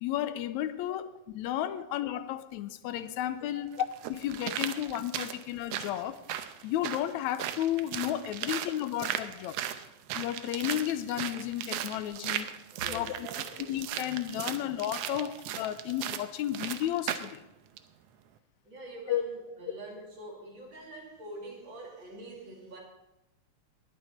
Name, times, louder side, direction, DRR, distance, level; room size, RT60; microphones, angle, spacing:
voice 1, 0.0-3.7 4.1-6.2 6.6-9.5 10.1-12.5 12.9-13.3 13.7-17.4 19.1-19.2, left 12 dB, 80° left, 13 dB, 1.9 m, -33 dB
sound 1, 2.9-3.0 3.8-17.4 17.8-17.9, right 11 dB, 75° right, 1.6 m, -37 dB
voice 2, 12.7-13.7 15.1-15.2 15.9-16.0 18.6-22.8, right 2 dB, 40° right, -2 dB, 3.5 m, -45 dB
20.5 x 8.9 x 4.3 m, 0.89 s
omnidirectional pair, 3.3 m